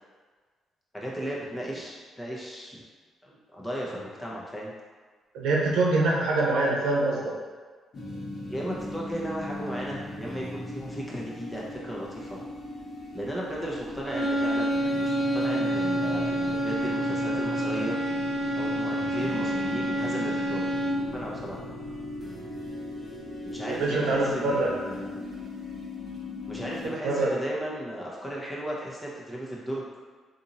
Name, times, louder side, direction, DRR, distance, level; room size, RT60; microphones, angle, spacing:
voice 1, 0.9-2.8 3.2-4.7 8.5-12.4 13.1-18.0 18.6-20.7 21.1-21.6 23.4-25.1 26.5-29.9, right 1 dB, 10° left, -4 dB, 0.9 m, -35 dB
voice 2, 5.3-7.3 23.7-24.7 27.0-27.3, right 2 dB, 85° right, -3 dB, 0.8 m, -24 dB
sound 1, 7.9-26.9, left 1 dB, 45° left, 1.1 m, -38 dB
sound 2, 14.0-21.2, equal, 25° right, 0.9 m, -28 dB
2.9 x 2.6 x 3.9 m, 1.5 s
cardioid pair, 90°, 0 cm